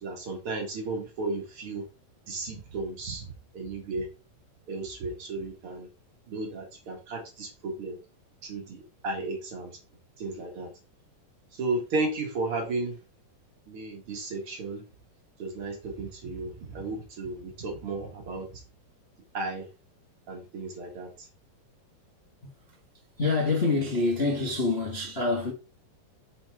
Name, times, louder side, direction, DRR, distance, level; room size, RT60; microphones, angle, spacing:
voice 1, 0.0-1.8 2.3-4.1 4.7-5.9 6.3-8.0 8.4-9.8 10.2-10.7 11.5-13.0 13.7-14.8 15.4-18.6 19.3-19.7 20.3-21.3, right 3 dB, 45° right, 2.2 m, -34 dB
voice 2, 23.2-25.5, left 3 dB, 75° left, 0.5 m, -26 dB
6.9 x 5.7 x 3.6 m
omnidirectional pair, 3.9 m